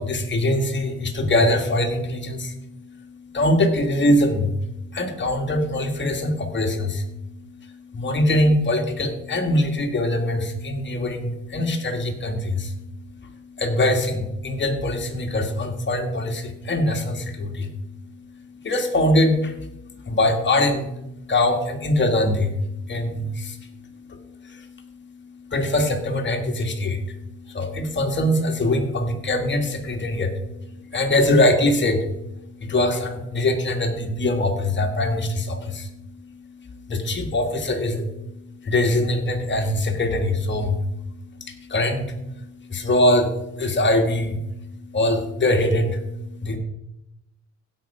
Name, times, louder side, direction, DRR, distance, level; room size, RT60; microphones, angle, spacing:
voice 1, 0.0-46.6, left 1 dB, 35° left, 4 dB, 1.9 m, -23 dB
16.0 x 5.5 x 4.8 m, 0.88 s
cardioid pair, 100°, 33 cm